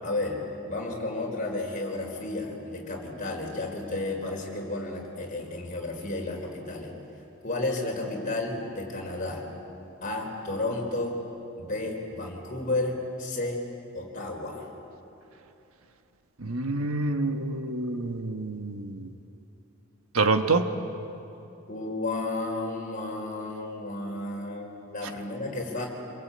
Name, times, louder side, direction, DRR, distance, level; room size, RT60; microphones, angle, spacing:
voice 1, 0.0-0.4 0.7-6.9 7.4-9.4 10.0-11.2 11.6-13.6 13.9-14.7 21.7-25.8, left 2 dB, 35° left, 0 dB, 4.4 m, -32 dB
voice 2, 16.4-19.0 20.1-20.7, right 3 dB, 80° right, 7 dB, 1.4 m, -27 dB
27.0 x 22.5 x 8.7 m, 2.9 s
head